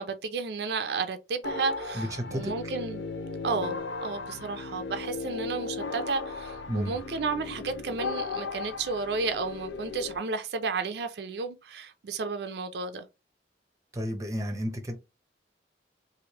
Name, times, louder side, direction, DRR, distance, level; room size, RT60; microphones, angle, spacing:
voice 1, 0.0-3.0 3.4-13.0, right 4 dB, 65° right, 0.4 m, -32 dB
sound 1, 1.4-10.2, left 4 dB, 90° left, 0.6 m, -36 dB
voice 2, 1.9-2.5 6.7-7.0 13.9-14.9, equal, 20° right, 0.6 m, -32 dB
3.1 x 2.5 x 2.8 m
head